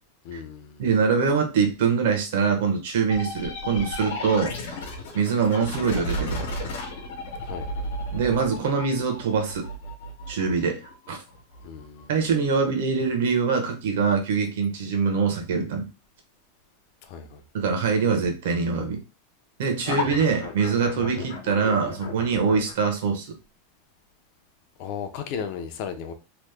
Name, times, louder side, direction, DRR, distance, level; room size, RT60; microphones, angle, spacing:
voice 1, 0.2-0.8 7.4-7.7 11.6-12.1 17.0-17.4 24.8-26.1, left 7 dB, 40° left, 0.5 m, -35 dB
voice 2, 0.8-4.8 5.1-6.5 8.1-9.7 10.3-11.2 12.1-15.9 17.5-19.0 19.6-23.3, right 5 dB, 65° right, 0.9 m, -24 dB
sound 1, 3.1-12.5 19.8-22.7, left 1 dB, 65° left, 0.9 m, -34 dB
3.0 x 2.1 x 3.3 m
supercardioid pair, 175°, 0 cm